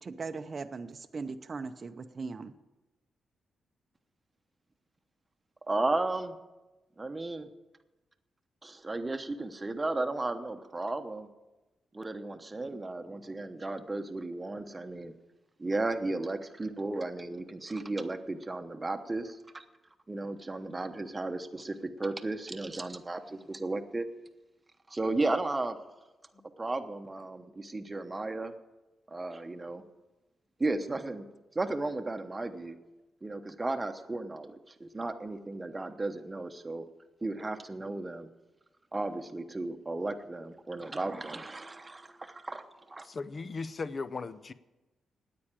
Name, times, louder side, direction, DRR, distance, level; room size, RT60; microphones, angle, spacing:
voice 1, 0.0-2.5, right 4 dB, 40° right, 8 dB, 0.6 m, -39 dB
voice 2, 5.7-6.4 7.0-7.5 8.6-11.3 11.9-15.1 15.6-19.6 20.1-24.0 24.9-25.8 26.6-28.5 29.1-29.8 30.6-31.3 31.5-32.8 33.2-36.8 37.2-38.3 38.9-43.1, right 2 dB, 20° right, 7 dB, 1.0 m, -34 dB
voice 3, 43.0-44.5, left 4 dB, 40° left, 15 dB, 0.6 m, -37 dB
9.5 x 8.6 x 8.9 m, 1.1 s
cardioid pair, 95°, 0 cm